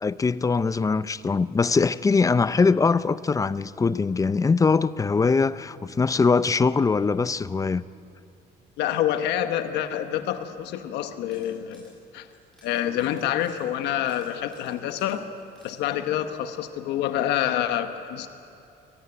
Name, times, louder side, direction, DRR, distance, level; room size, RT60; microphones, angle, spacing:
voice 1, 0.0-7.8, left 4 dB, 20° left, 0.5 m, -22 dB
voice 2, 8.8-12.3 12.6-15.3 15.6-18.3, left 11 dB, 85° left, 1.1 m, -27 dB
sound 1, 11.3-11.9 12.3-15.8, left 1 dB, 5° left, 6.7 m, -58 dB
23.0 x 15.5 x 9.8 m
cardioid pair, 110°, 17 cm